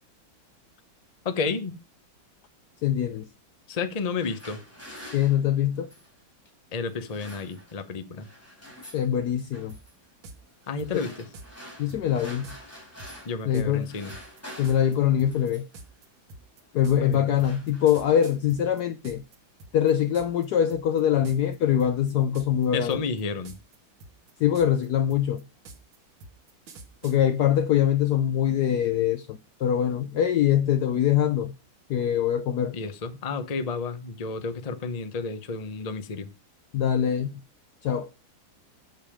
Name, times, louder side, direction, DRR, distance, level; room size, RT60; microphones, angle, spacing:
voice 1, 1.2-1.7 3.7-4.6 6.7-8.3 10.7-11.1 13.3-14.1 17.0-17.3 22.7-23.5 32.7-36.3, left 4 dB, 35° left, 0.6 m, -31 dB
voice 2, 2.8-3.3 5.1-5.9 8.9-9.7 11.8-12.5 13.4-14.0 14.6-15.7 16.7-19.2 19.7-23.0 24.4-25.4 27.0-31.5 31.9-32.8 36.7-37.4 37.8-38.1, left 10 dB, 70° left, 1.0 m, -23 dB
sound 1, 4.0-6.2 6.9-7.9 8.2-9.1 9.5-9.9 10.6-13.5 13.7-15.8 16.6-16.8 17.1-18.2, equal, 5° left, 4.3 m, -47 dB
sound 2, 9.7-9.8 10.2-10.4 10.8-11.5 11.9-12.0 12.4-12.6 13.0-19.4 19.6-20.5 20.7-21.0 21.3-21.6 21.8-22.7 22.9-23.8 24.0-27.2, right 2 dB, 85° right, 2.2 m, -46 dB
8.1 x 7.2 x 5.0 m
omnidirectional pair, 2.2 m